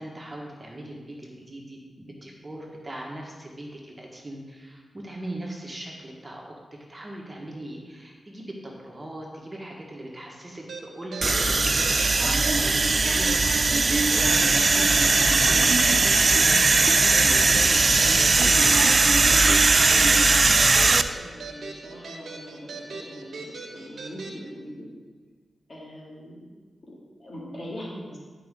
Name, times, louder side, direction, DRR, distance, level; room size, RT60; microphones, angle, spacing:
voice 1, 0.0-6.6 6.9-12.4 12.7-15.7 16.0-19.6, right 1 dB, 30° right, -1 dB, 1.5 m, -40 dB
sound 1, 10.7-24.4, right 3 dB, 80° right, 1.1 m, -39 dB
sound 2, 11.2-21.0, right 3 dB, 45° right, 0.4 m, -19 dB
voice 2, 21.1-24.9 25.7-26.4 26.8-28.2, equal, 50° left, -5 dB, 2.6 m, -41 dB
11.0 x 5.1 x 3.8 m, 1.5 s
cardioid pair, 60°, 0 cm